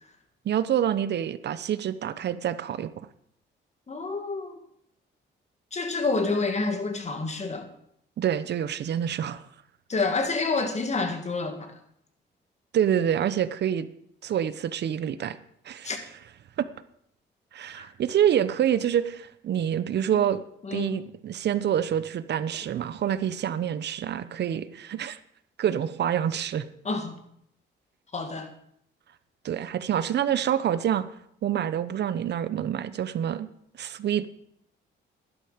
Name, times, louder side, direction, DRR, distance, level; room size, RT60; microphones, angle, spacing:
voice 1, 0.4-3.1 8.2-9.4 12.7-13.9 14.2-15.4 15.6-15.9 16.6-16.7 17.5-20.4 20.7-25.2 25.6-26.6 29.4-31.1 31.4-33.5 33.8-34.3, right 9 dB, 60° right, 0.8 m, -27 dB
voice 2, 3.9-4.5 5.7-7.7 9.9-11.7 15.8-16.0 17.8-17.9 20.1-20.2 20.6-21.0 26.8-27.2 28.1-28.5, left 3 dB, 35° left, 2.1 m, -28 dB
11.5 x 11.5 x 5.1 m
cardioid pair, 90°, 20 cm